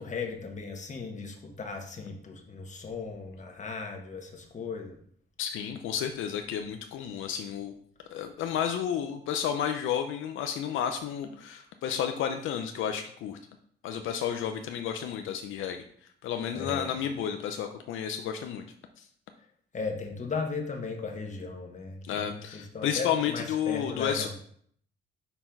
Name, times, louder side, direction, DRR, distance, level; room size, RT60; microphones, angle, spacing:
voice 1, 0.0-5.0 16.5-17.0 19.7-24.3, left 4 dB, 35° left, 3 dB, 1.3 m, -36 dB
voice 2, 5.4-7.7 8.1-13.4 13.8-15.8 16.2-18.7 19.0-19.1 22.0-24.3, left 8 dB, 80° left, 6 dB, 0.6 m, -31 dB
5.5 x 4.3 x 4.5 m, 0.63 s
cardioid pair, 90°, 20 cm